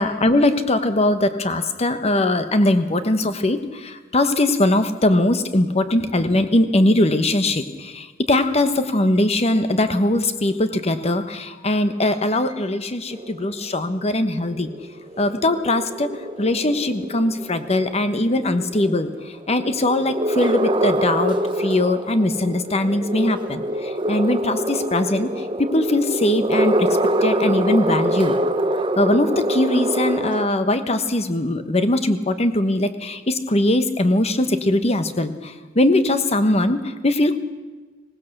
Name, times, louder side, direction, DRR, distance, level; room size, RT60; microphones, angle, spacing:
voice 1, 0.0-14.7 15.2-19.1 19.5-25.4 25.7-26.9 27.2-28.4 29.0-37.3, left 1 dB, 35° left, 10 dB, 1.1 m, -21 dB
sound 1, 13.1-30.5, right 1 dB, 25° right, 0.9 m, -25 dB
25.0 x 18.0 x 6.6 m, 1.3 s
head